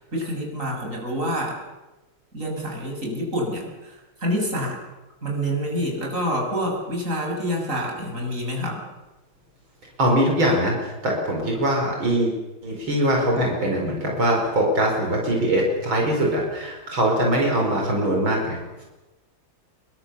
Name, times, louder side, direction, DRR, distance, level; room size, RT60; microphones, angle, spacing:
voice 1, 0.1-1.6 2.3-4.8 5.2-8.8, equal, 35° right, 0 dB, 7.0 m, -27 dB
voice 2, 10.0-10.7 11.0-12.3 12.6-18.6, right 1 dB, 75° right, 0 dB, 5.7 m, -22 dB
27.5 x 23.0 x 7.0 m, 1.0 s
omnidirectional pair, 2.2 m